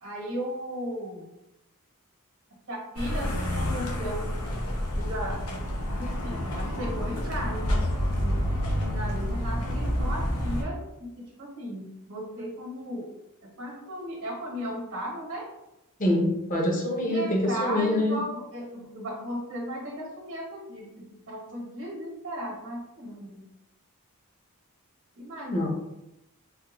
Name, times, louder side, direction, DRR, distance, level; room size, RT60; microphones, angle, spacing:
voice 1, 0.0-1.3 2.7-4.3 4.9-5.4 5.8-7.8 8.2-13.1 13.6-15.5 17.0-23.5 25.2-25.7, equal, 65° right, -2 dB, 0.9 m, -36 dB
sound 1, 3.0-10.6, equal, 90° left, 0.8 m, -29 dB
voice 2, 16.0-18.2 25.5-25.7, left 1 dB, 35° left, 0 dB, 0.7 m, -25 dB
3.5 x 2.2 x 2.9 m, 0.91 s
head